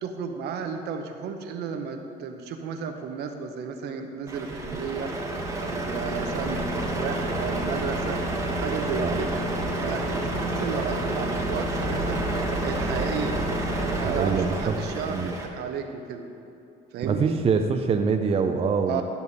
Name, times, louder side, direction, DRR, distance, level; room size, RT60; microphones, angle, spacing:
voice 1, 0.0-5.1 5.6-6.6 7.0-8.2 8.6-9.3 9.8-12.2 12.6-13.4 13.9-16.3 16.9-17.4 18.9-19.0, right 6 dB, 75° right, 5 dB, 1.0 m, -33 dB
Truck, 4.3-15.5, right 1 dB, 20° right, 1.3 m, -29 dB
voice 2, 13.9-14.8 15.1-15.3 17.0-19.0, right 5 dB, 35° right, 5 dB, 0.5 m, -25 dB
12.0 x 7.1 x 4.1 m, 2.8 s
cardioid pair, 110°, 17 cm